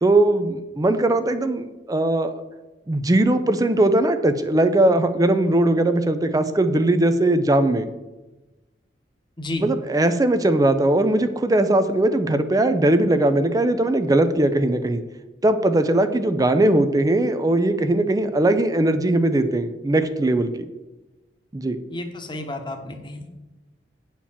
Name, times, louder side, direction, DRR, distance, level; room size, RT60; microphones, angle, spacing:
voice 1, 0.0-2.3 2.9-7.9 9.6-15.0 15.4-20.5 21.5-21.8, right 1 dB, 20° right, 10 dB, 0.5 m, -19 dB
voice 2, 21.9-23.3, left 1 dB, 25° left, 4 dB, 1.1 m, -31 dB
8.7 x 4.4 x 7.2 m, 1.1 s
head